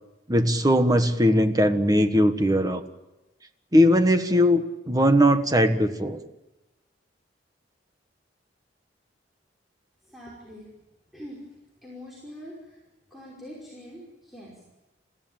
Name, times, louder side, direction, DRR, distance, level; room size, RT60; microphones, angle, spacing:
voice 1, 0.3-2.8 3.7-6.2, equal, 20° right, 8 dB, 1.5 m, -20 dB
voice 2, 10.1-10.7 11.1-11.4 11.8-12.8 13.1-14.5, equal, ahead, -5 dB, 5.3 m, -43 dB
29.5 x 15.5 x 8.9 m, 1.0 s
head